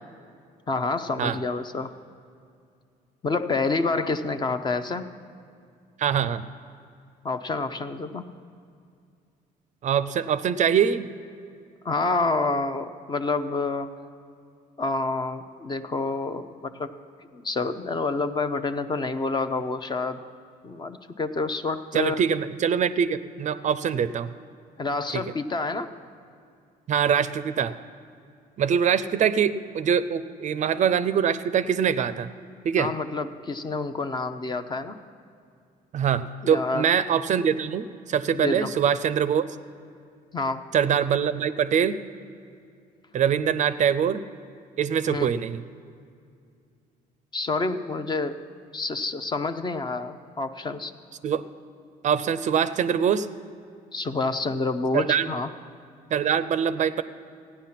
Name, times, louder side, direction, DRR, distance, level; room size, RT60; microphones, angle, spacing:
voice 1, 0.7-1.9 3.2-5.1 7.2-8.3 11.8-13.9 14.8-16.9 17.3-20.2 20.6-22.2 24.8-25.9 32.8-35.0 36.4-36.9 38.3-38.7 40.3-40.7 45.1-45.3 47.3-48.4 48.7-50.9 53.9-55.5, left 3 dB, 25° left, 10 dB, 0.6 m, -28 dB
voice 2, 6.0-6.4 9.8-11.1 21.9-24.3 26.9-27.7 28.6-32.3 32.6-32.9 35.9-39.5 40.7-42.0 43.1-44.2 44.8-45.6 51.2-51.4 52.0-53.3 54.9-55.3 56.1-57.0, right 8 dB, 45° right, 13 dB, 0.5 m, -23 dB
15.0 x 9.8 x 5.8 m, 2.4 s
cardioid pair, 110°, 17 cm